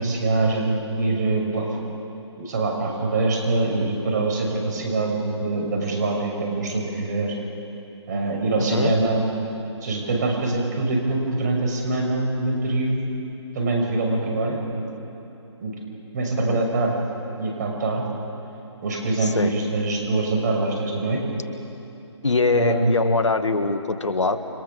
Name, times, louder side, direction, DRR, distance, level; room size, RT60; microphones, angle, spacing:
voice 1, 0.0-1.8 2.4-7.3 8.1-9.3 9.8-13.1 13.5-14.8 15.6-15.7 16.1-17.0 17.4-18.0 18.8-21.2 22.5-22.9, right 2 dB, 40° right, 1 dB, 6.3 m, -24 dB
voice 2, 8.6-8.9 16.5-16.6 19.2-19.5 22.2-24.4, left 3 dB, 80° left, 8 dB, 2.1 m, -22 dB
29.5 x 26.5 x 7.1 m, 2.9 s
figure-of-eight pair, 150°, 15 cm